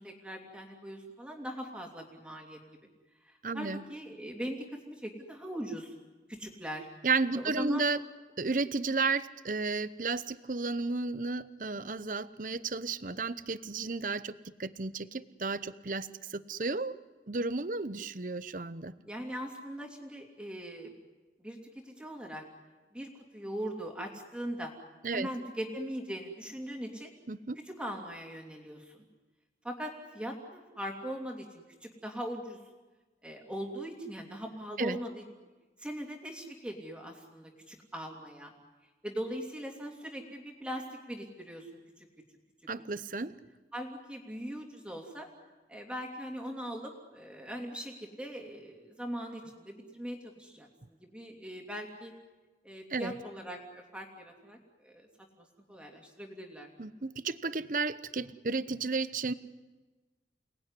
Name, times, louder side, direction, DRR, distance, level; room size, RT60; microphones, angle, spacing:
voice 1, 0.0-2.6 3.2-5.9 6.3-6.9 7.3-7.9 19.0-20.9 21.4-21.6 21.8-22.4 22.9-24.7 25.1-27.1 27.6-29.0 29.6-32.6 33.2-35.2 35.8-38.5 39.0-42.1 43.7-45.3 45.7-52.1 52.6-54.6 54.8-55.1 55.4-56.7, equal, 5° right, 1 dB, 2.9 m, -40 dB
voice 2, 3.4-3.8 7.0-8.0 8.4-14.3 14.6-17.0 17.3-18.9 25.0-25.3 27.3-27.6 34.8-35.0 42.7-43.4 52.9-53.1 56.8-59.3, right 4 dB, 45° right, 15 dB, 0.8 m, -33 dB
29.0 x 19.5 x 9.9 m, 1.3 s
head